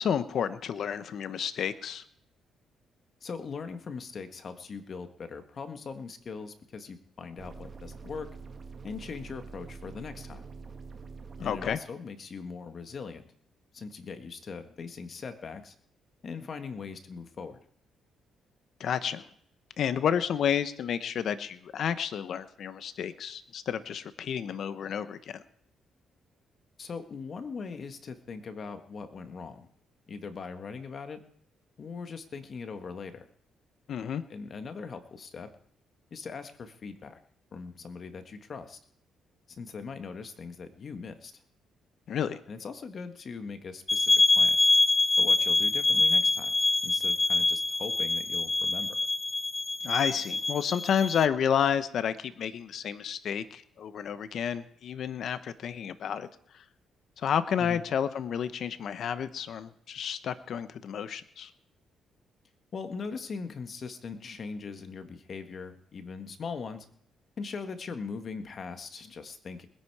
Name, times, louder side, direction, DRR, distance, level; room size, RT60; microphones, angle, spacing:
voice 1, 0.0-2.0 11.4-11.8 18.8-19.2 19.8-25.4 33.9-34.2 42.1-42.4 49.8-56.3 56.5-56.6 57.2-61.5, left 8 dB, 65° left, 13 dB, 0.9 m, -30 dB
voice 2, 3.2-8.3 8.8-10.5 11.4-13.3 13.7-15.7 16.2-17.6 26.8-29.7 30.1-31.2 31.8-33.3 34.3-35.5 36.1-37.2 37.5-38.8 39.5-41.3 42.5-44.6 45.2-46.5 46.8-49.0 57.6-57.8 62.7-66.8 67.4-69.7, left 5 dB, 50° left, 8 dB, 1.6 m, -40 dB
sound 1, 7.4-11.8, right 4 dB, 40° right, 1.5 m, -45 dB
sound 2, 43.9-51.3, left 2 dB, 20° left, 0.6 m, -25 dB
20.5 x 10.0 x 4.8 m, 0.67 s
cardioid pair, 90°, 0 cm